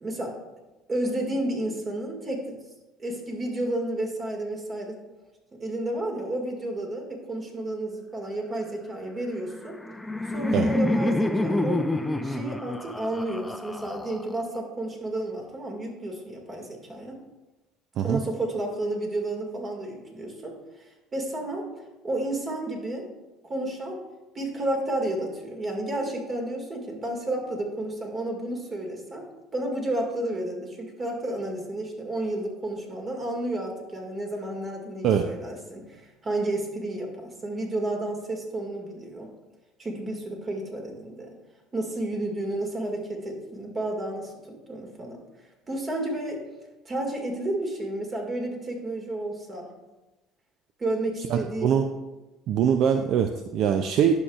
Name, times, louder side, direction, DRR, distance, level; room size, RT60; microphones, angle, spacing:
voice 1, 0.0-0.3 0.9-2.6 3.0-5.0 5.6-9.8 10.3-11.9 12.2-17.2 18.0-20.6 21.1-21.7 22.0-23.1 23.4-24.0 24.3-29.3 29.5-39.3 39.8-41.3 41.7-45.2 45.7-46.4 46.9-49.7 50.8-51.8, right 1 dB, 30° right, 1 dB, 2.0 m, -31 dB
Laughter, 9.5-14.6, left 2 dB, 10° left, 0.5 m, -27 dB
voice 2, 51.3-51.9 52.5-54.1, right 8 dB, 60° right, 7 dB, 0.4 m, -23 dB
11.0 x 6.4 x 2.4 m, 1.1 s
supercardioid pair, 90°, 0 cm